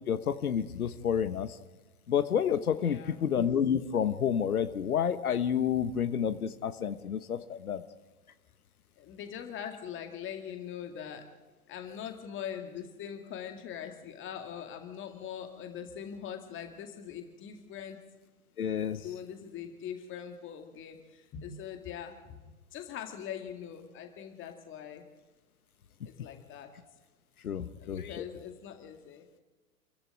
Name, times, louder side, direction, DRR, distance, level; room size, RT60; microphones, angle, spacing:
voice 1, 0.1-1.6 2.1-7.8 18.6-19.0 27.4-28.2, left 8 dB, 70° left, 11 dB, 1.2 m, -29 dB
voice 2, 2.7-3.2 6.8-6.9 9.0-11.3 11.7-18.0 18.9-22.4 22.7-25.0 26.0-26.7 27.6-29.3, left 8 dB, 25° left, 5 dB, 2.1 m, -42 dB
28.0 x 15.5 x 9.0 m, 1.3 s
figure-of-eight pair, 105°, 44 cm